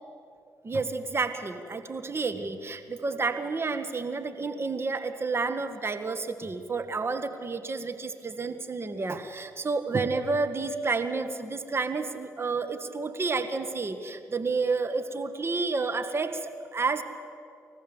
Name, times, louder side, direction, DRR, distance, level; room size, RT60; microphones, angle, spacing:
voice 1, 0.6-17.0, right 4 dB, 40° right, 8 dB, 2.0 m, -30 dB
28.5 x 14.5 x 8.3 m, 2.6 s
supercardioid pair, 50°, 7 cm